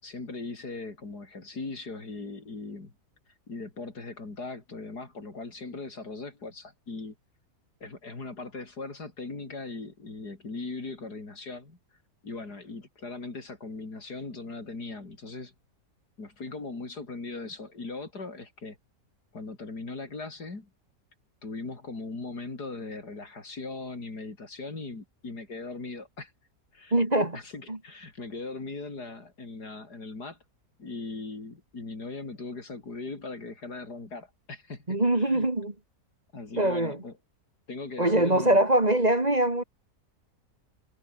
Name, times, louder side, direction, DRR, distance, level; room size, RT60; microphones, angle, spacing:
voice 1, 0.0-2.9 3.5-7.2 7.8-11.8 12.2-15.5 16.2-18.8 19.3-20.7 21.4-26.3 26.7-27.0 27.3-30.4 30.8-35.5 36.3-37.1 37.7-38.6, left 3 dB, 80° left, 4.8 m, -39 dB
voice 2, 26.9-27.4 27.7-27.8 34.9-35.7 36.6-37.0 38.0-39.6, right 1 dB, 25° right, 2.4 m, -23 dB
omnidirectional pair, 1.7 m